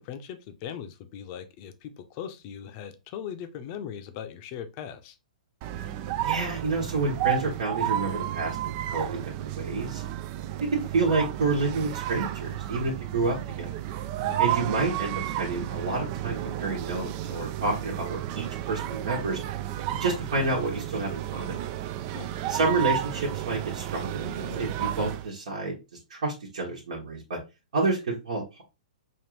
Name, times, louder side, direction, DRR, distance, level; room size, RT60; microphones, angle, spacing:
voice 1, 0.0-5.2 14.2-14.4 22.1-22.3, left 8 dB, 40° left, 0.6 m, -39 dB
sound 1, 5.6-25.3, right 12 dB, 40° right, 0.3 m, -32 dB
voice 2, 6.2-10.0 10.7-13.7 14.4-19.4 19.9-21.6 22.5-25.8 26.1-27.4 27.7-28.6, right 3 dB, 65° right, 1.2 m, -29 dB
5.1 x 2.6 x 3.1 m
hypercardioid pair, 120°, 4 cm